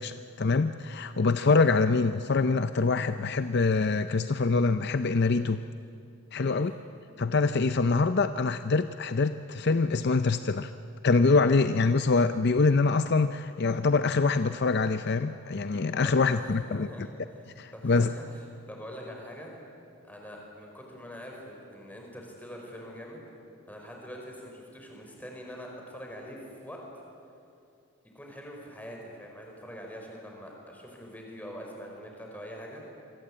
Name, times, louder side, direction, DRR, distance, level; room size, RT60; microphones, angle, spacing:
voice 1, 0.0-5.6 6.3-6.7 7.2-10.7 11.0-16.9 17.6-18.1, left 4 dB, 50° left, 11 dB, 0.5 m, -25 dB
voice 2, 16.0-19.5 20.0-23.2 23.7-26.8 28.1-32.8, equal, 5° left, 0 dB, 4.9 m, -44 dB
27.0 x 23.5 x 8.7 m, 2.7 s
head